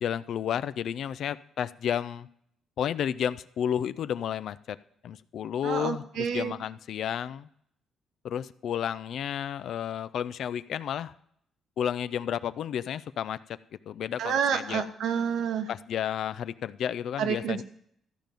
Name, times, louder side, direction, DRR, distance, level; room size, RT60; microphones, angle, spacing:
voice 1, 0.0-2.3 2.8-4.8 5.0-7.5 8.2-11.1 11.8-13.6 13.9-14.9 15.7-17.6, left 9 dB, 70° left, 16 dB, 0.4 m, -32 dB
voice 2, 5.6-6.5 14.2-15.7 17.2-17.6, right 7 dB, 80° right, 8 dB, 1.1 m, -29 dB
13.5 x 5.2 x 9.1 m, 0.71 s
cardioid pair, 90°, 0 cm